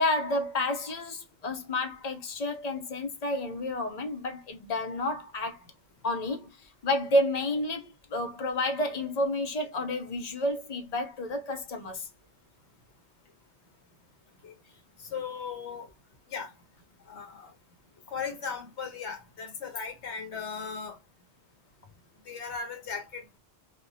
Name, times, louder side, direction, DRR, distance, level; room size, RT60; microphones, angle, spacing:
voice 1, 0.0-5.6 6.0-6.6 6.8-12.1, left 1 dB, 45° left, 0.6 m, -30 dB
voice 2, 15.1-15.9 16.3-16.5 17.1-17.5 18.1-21.0 22.3-23.4, left 6 dB, 85° left, 1.2 m, -37 dB
3.3 x 2.2 x 2.6 m
omnidirectional pair, 1.1 m